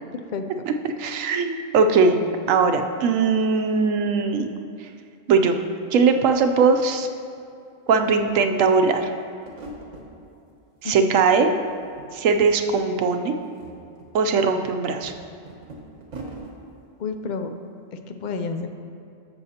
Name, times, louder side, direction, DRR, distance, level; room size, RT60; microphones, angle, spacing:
voice 1, 0.7-2.2 2.5-4.5 5.3-5.6 5.9-7.1 7.9-9.1 10.8-11.5 12.1-13.3 14.1-15.1, right 4 dB, 85° right, 6 dB, 1.0 m, -20 dB
sound 1, 6.1-6.2 6.4-7.5 7.9-10.1 10.5-11.2 11.5-12.4 12.6-12.8 13.3-16.5, right 2 dB, 70° right, 1.5 m, -43 dB
voice 2, 17.0-17.5 18.1-18.7, left 4 dB, 70° left, 7 dB, 0.4 m, -29 dB
12.5 x 7.0 x 2.8 m, 2.6 s
omnidirectional pair, 1.3 m